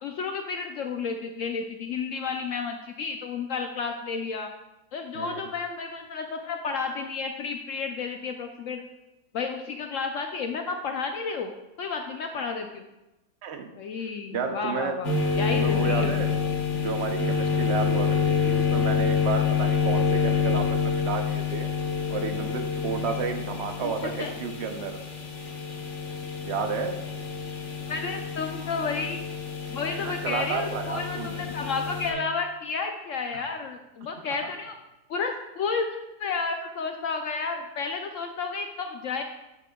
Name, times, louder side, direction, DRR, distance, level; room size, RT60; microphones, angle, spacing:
voice 1, 0.0-4.5 4.9-8.8 9.3-11.5 11.8-12.9 13.8-16.2 23.8-24.3 27.9-29.2 29.7-34.7 35.1-35.9 36.2-39.2, left 4 dB, 70° left, 4 dB, 0.7 m, -31 dB
voice 2, 14.3-14.9 15.5-16.3 16.7-21.7 22.1-25.0 26.4-27.0 30.0-31.5 34.4-34.5, right 6 dB, 60° right, 6 dB, 0.7 m, -31 dB
sound 1, 15.0-32.1, left 6 dB, 50° left, 1.3 m, -27 dB
9.1 x 7.7 x 2.2 m, 1.0 s
omnidirectional pair, 1.7 m